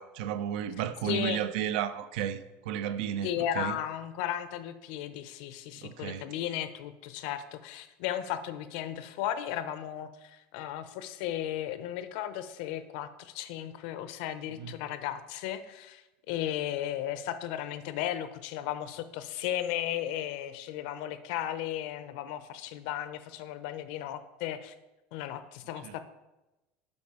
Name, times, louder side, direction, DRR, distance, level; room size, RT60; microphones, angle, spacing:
voice 1, 0.0-3.3 3.6-3.8 5.8-6.3 14.6-14.8 25.8-25.9, right 10 dB, 85° right, 13 dB, 0.5 m, -33 dB
voice 2, 1.0-1.4 3.2-24.7 25.1-26.0, left 11 dB, 70° left, 11 dB, 0.6 m, -35 dB
7.0 x 5.2 x 4.8 m, 1.0 s
cardioid pair, 165°, 5 cm